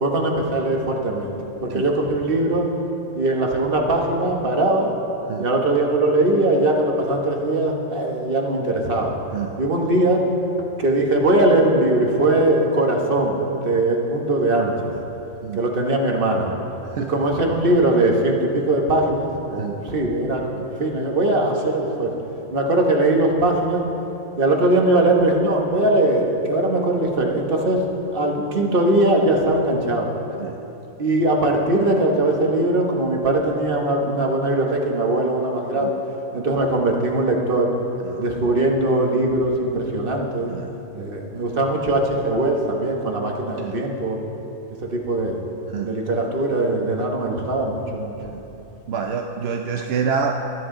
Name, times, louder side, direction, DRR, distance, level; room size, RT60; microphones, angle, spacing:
voice 1, 0.0-1.3 1.6-2.6 3.1-4.9 5.4-9.1 9.6-10.2 10.8-13.4 13.6-14.7 15.5-16.5 17.0-22.1 22.5-23.8 24.4-27.8 28.1-30.1 31.0-35.9 36.3-37.7 38.2-40.5 40.9-44.2 44.9-45.4 45.8-48.1, right 1 dB, 40° right, 1 dB, 1.4 m, -20 dB
voice 2, 48.9-50.4, right 6 dB, 60° right, 3 dB, 0.7 m, -27 dB
22.0 x 7.9 x 3.8 m, 3.0 s
omnidirectional pair, 1.5 m